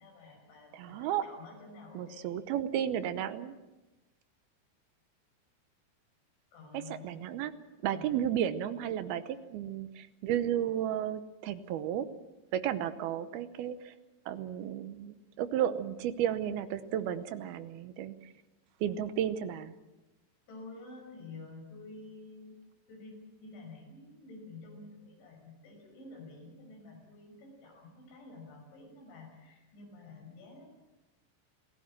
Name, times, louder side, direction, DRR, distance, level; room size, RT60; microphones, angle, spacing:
voice 1, 0.0-2.3 6.5-7.1 7.9-8.0 20.5-22.5 22.9-30.7, left 3 dB, 85° left, -1 dB, 8.2 m, -50 dB
voice 2, 0.7-1.2 1.9-3.6 6.7-7.5 7.8-12.1 12.5-13.9 14.3-18.2 18.8-19.7, right 10 dB, 75° right, 11 dB, 2.5 m, -33 dB
28.5 x 17.5 x 7.5 m, 1.1 s
omnidirectional pair, 5.2 m